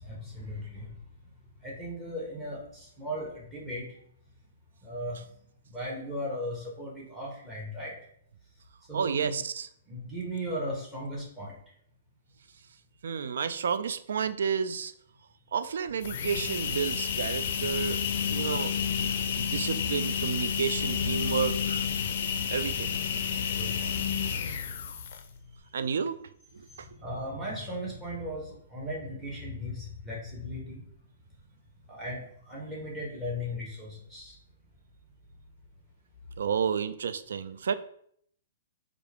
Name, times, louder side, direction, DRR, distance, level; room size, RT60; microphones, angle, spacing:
voice 1, 0.0-0.9 1.6-3.8 4.8-5.2 5.7-7.9 8.9-9.3 9.9-11.5 18.3-18.5 23.6-24.0 27.0-30.8 31.9-34.3, equal, 10° right, -5 dB, 1.4 m, -37 dB
voice 2, 8.9-9.7 13.0-14.9 15.5-18.7 19.0-21.9 22.5-22.9 25.7-26.9 36.4-37.7, right 6 dB, 80° right, 13 dB, 0.3 m, -31 dB
sound 1, 15.9-25.4, left 7 dB, 55° left, 0.4 m, -30 dB
4.5 x 2.5 x 3.4 m, 0.66 s
hypercardioid pair, 150°, 0 cm